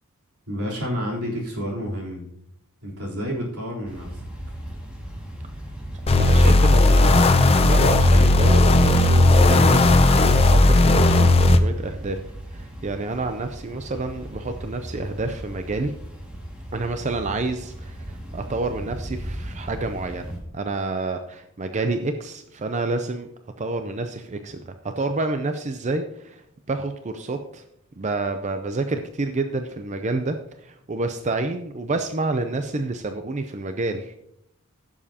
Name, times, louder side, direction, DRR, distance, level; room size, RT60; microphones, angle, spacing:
voice 1, 0.5-2.3 2.8-4.2, equal, 85° right, -3 dB, 3.6 m, -29 dB
sound 1, 3.8-20.4, right 1 dB, 5° right, 2.0 m, -36 dB
sound 2, 6.1-11.6, left 2 dB, 25° left, 0.5 m, -15 dB
voice 2, 6.1-12.2 12.5-15.9 16.7-20.3 20.5-23.3 23.6-26.4 26.7-27.6 28.0-34.2, right 2 dB, 30° right, 7 dB, 0.5 m, -28 dB
15.5 x 7.3 x 2.8 m, 0.74 s
head